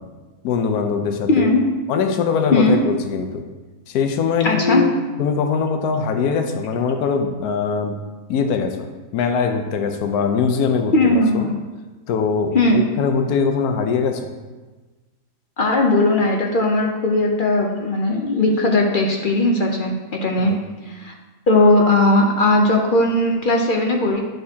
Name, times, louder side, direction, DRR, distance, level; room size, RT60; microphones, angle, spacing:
voice 1, 0.4-1.5 1.9-3.4 3.9-4.9 5.2-8.0 8.3-8.9 9.1-11.4 12.1-14.2 20.4-20.6, left 5 dB, 75° left, 5 dB, 1.2 m, -22 dB
voice 2, 1.3-1.6 2.5-2.8 4.4-4.8 10.9-11.6 12.5-12.8 15.6-20.5 20.9-21.1 21.5-24.2, left 2 dB, 55° left, 1 dB, 0.6 m, -18 dB
9.4 x 6.5 x 2.8 m, 1.2 s
omnidirectional pair, 1.7 m